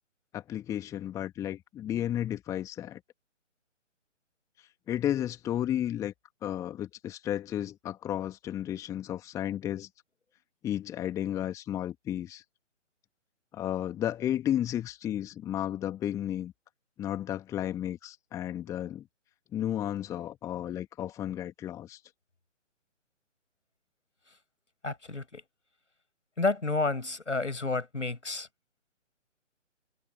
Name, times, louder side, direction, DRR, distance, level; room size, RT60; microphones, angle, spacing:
voice 1, 0.3-3.0 4.9-6.1 6.4-9.9 10.6-12.4 13.5-16.5 17.0-19.0 19.5-22.0, left 11 dB, 10° left, 2.0 m, -33 dB
voice 2, 24.8-25.4 26.4-28.5, left 3 dB, 70° left, 7.8 m, -30 dB
figure-of-eight pair, 140°, 38 cm